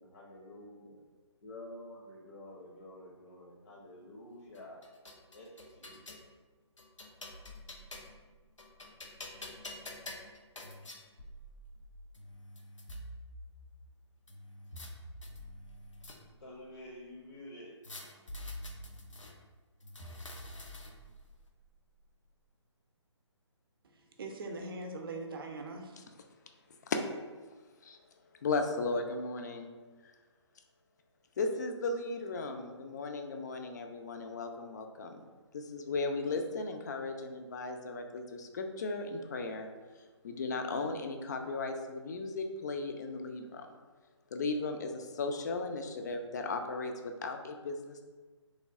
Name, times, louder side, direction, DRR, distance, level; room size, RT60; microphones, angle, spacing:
voice 1, 0.0-1.0 1.4-4.9 5.3-6.3 16.4-17.8, left 1 dB, 55° left, -4 dB, 0.7 m, -49 dB
sound 1, 4.5-6.3 6.8-8.2 8.6-11.0 11.8-11.9 12.1-13.0 14.3-14.9 15.2-16.5 17.8-19.3 19.8-21.1, left 2 dB, 85° left, 0.6 m, -49 dB
sound 2, 7.3-10.1 11.2-12.2 12.9-14.0 14.7-17.0 18.3-19.4 20.0-22.2, equal, 70° left, 1.3 m, -50 dB
voice 2, 23.8-26.0, right 2 dB, 50° right, 3 dB, 0.5 m, -41 dB
voice 3, 28.4-29.7 31.4-35.2 35.5-39.7 40.2-43.7 44.3-48.0, left 3 dB, 35° left, 5 dB, 0.3 m, -36 dB
3.1 x 2.2 x 3.5 m, 1.3 s
figure-of-eight pair, 145°, 15 cm